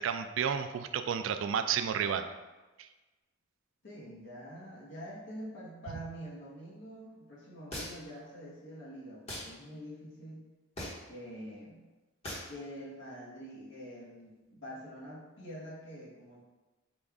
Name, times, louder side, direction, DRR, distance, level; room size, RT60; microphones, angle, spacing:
voice 1, 0.0-2.3, right 7 dB, 70° right, 9 dB, 0.3 m, -31 dB
voice 2, 3.8-10.5 11.1-11.8 12.5-16.4, equal, 60° left, -7 dB, 1.2 m, -46 dB
sound 1, 7.7-8.2 9.3-9.5 10.8-11.1 12.2-12.5, left 1 dB, 30° left, 1.2 m, -39 dB
5.1 x 2.4 x 3.5 m, 1.2 s
head